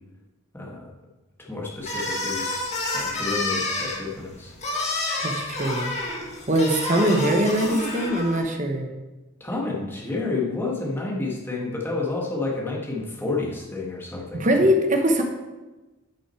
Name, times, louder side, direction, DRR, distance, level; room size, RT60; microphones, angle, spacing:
voice 1, 0.5-0.9 1.4-2.5 2.9-4.5 9.4-14.7, left 3 dB, 10° left, -3 dB, 1.6 m, -30 dB
sound 1, 1.8-8.4, left 2 dB, 30° left, 1.6 m, -29 dB
voice 2, 5.2-5.9 6.5-8.9 14.3-15.2, right 1 dB, 35° right, 3 dB, 1.1 m, -22 dB
11.5 x 6.3 x 4.5 m, 1.2 s
head